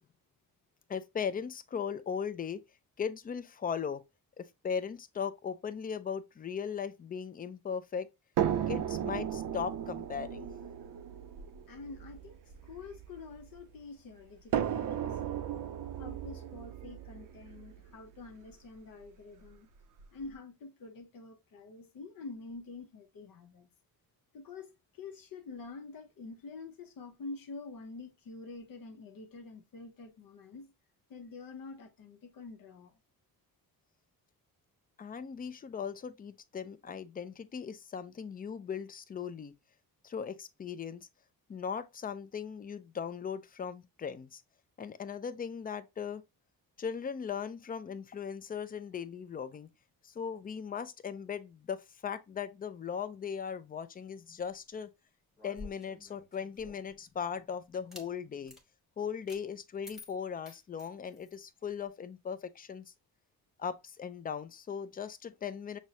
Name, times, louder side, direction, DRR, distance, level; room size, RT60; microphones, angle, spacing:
voice 1, 0.9-2.6 3.0-4.0 4.4-8.1 8.7-10.5 35.0-39.5 40.0-41.1 41.5-44.4 44.8-46.2 46.8-49.7 50.0-54.9 55.4-58.5 59.0-62.9 63.6-65.8, left 7 dB, 25° left, 0.4 m, -38 dB
sound 1, 8.4-13.6 14.5-18.5 19.4-19.5 20.0-20.1, right 10 dB, 55° right, 0.5 m, -36 dB
voice 2, 11.7-15.7 16.0-19.7 20.1-23.7 24.3-30.7 31.1-32.9, left 3 dB, 60° left, 0.8 m, -47 dB
sound 2, 55.4-56.9 57.7-58.1 58.5-58.6 59.3-59.4 59.8-61.4, left 2 dB, ahead, 1.1 m, -51 dB
6.1 x 2.1 x 2.7 m
cardioid pair, 110°, 38 cm